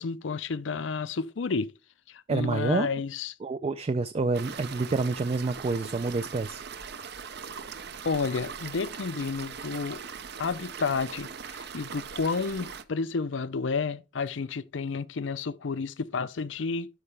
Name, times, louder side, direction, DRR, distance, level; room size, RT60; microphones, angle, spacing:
voice 1, 0.0-1.7 2.1-3.3 8.0-10.0 10.4-16.9, left 4 dB, 75° left, 0.6 m, -31 dB
voice 2, 2.3-2.9 3.4-6.6, right 3 dB, 30° right, 0.4 m, -28 dB
sound 1, 4.3-12.8, right 6 dB, 60° right, 0.7 m, -40 dB
12.5 x 4.9 x 3.3 m
head